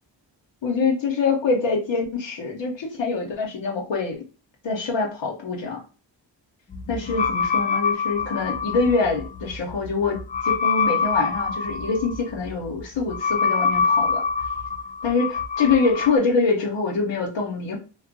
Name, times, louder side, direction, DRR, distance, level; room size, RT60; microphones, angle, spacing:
voice 1, 0.6-4.2 4.6-5.8 6.9-14.2 15.0-17.8, left 4 dB, 75° left, -1 dB, 0.8 m, -24 dB
sound 1, 6.7-16.2, left 5 dB, 20° left, 0.3 m, -25 dB
2.4 x 2.2 x 2.5 m, 0.35 s
cardioid pair, 40°, 45 cm